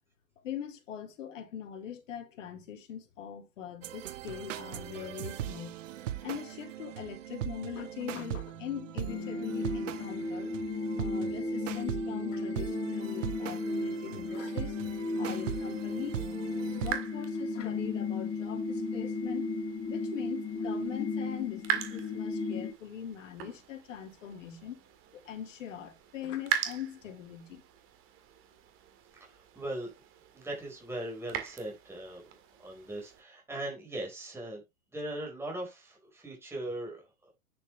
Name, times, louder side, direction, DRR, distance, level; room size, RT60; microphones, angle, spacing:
voice 1, 0.4-5.8 6.2-10.5 11.0-14.8 15.2-16.2 16.7-19.5 19.9-24.8 25.1-27.6, left 9 dB, 60° left, 3.2 m, -41 dB
sound 1, 3.8-17.0, right 12 dB, 60° right, 1.2 m, -40 dB
sound 2, 9.1-22.7, left 3 dB, 10° left, 0.6 m, -34 dB
sound 3, 15.4-33.2, right 9 dB, 30° right, 2.0 m, -42 dB
voice 2, 29.2-29.9 30.3-32.2 32.6-34.6 34.9-37.3, right 1 dB, 5° right, 4.8 m, -39 dB
10.0 x 7.1 x 3.3 m
hypercardioid pair, 125°, 43 cm